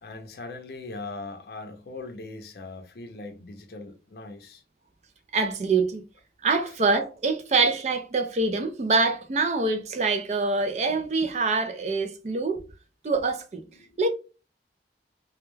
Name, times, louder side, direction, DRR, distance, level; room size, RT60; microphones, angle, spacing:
voice 1, 0.0-4.6 13.8-14.0, left 3 dB, 60° left, 0.5 m, -40 dB
voice 2, 5.3-6.0 6.4-12.6 13.0-13.6 14.0-14.1, right 3 dB, 40° right, 0.3 m, -25 dB
2.3 x 2.1 x 3.1 m
head